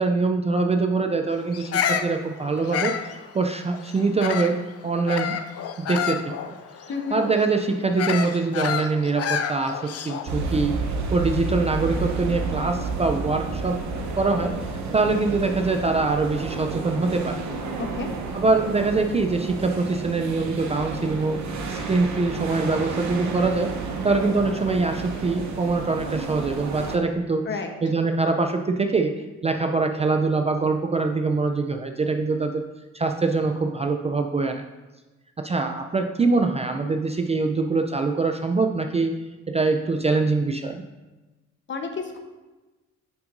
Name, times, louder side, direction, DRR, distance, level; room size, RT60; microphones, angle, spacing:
voice 1, 0.0-3.0 3.3-5.4 5.8-6.3 7.1-10.8 11.1-13.8 14.2-14.6 14.9-17.4 18.3-21.4 21.7-23.7 24.0-27.5 27.8-29.1 29.4-32.6 32.9-34.6 35.4-39.1 39.5-40.9, right 3 dB, 20° right, 4 dB, 0.4 m, -23 dB
Bird vocalization bird call bird song, 1.5-4.6 5.1-10.4, left 8 dB, 55° left, 0.6 m, -29 dB
voice 2, 6.9-7.2 17.8-18.1 27.5-27.7 41.7-42.2, left 4 dB, 40° left, 5 dB, 1.0 m, -30 dB
sound 1, 10.3-27.0, right 3 dB, 70° right, 1.0 m, -31 dB
9.0 x 5.8 x 2.6 m, 1.2 s
cardioid pair, 90°, 30 cm